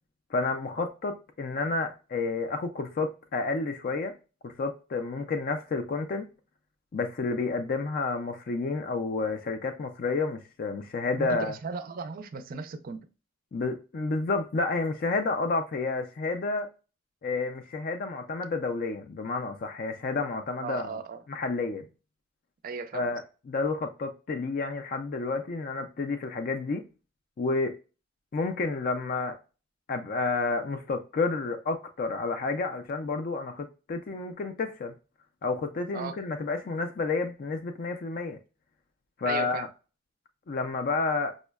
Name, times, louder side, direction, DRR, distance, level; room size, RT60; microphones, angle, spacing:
voice 1, 0.3-4.1 4.4-6.3 6.9-11.6 13.5-16.7 17.2-21.0 21.3-21.9 22.9-26.8 27.4-27.7 28.3-29.4 29.9-34.9 35.4-38.4 39.2-39.7 40.5-41.3, left 3 dB, 45° left, 0.4 m, -30 dB
voice 2, 11.2-13.0 20.6-21.2 22.6-23.2 35.9-36.2 39.2-39.7, right 4 dB, 45° right, 0.4 m, -36 dB
5.1 x 2.1 x 2.2 m
head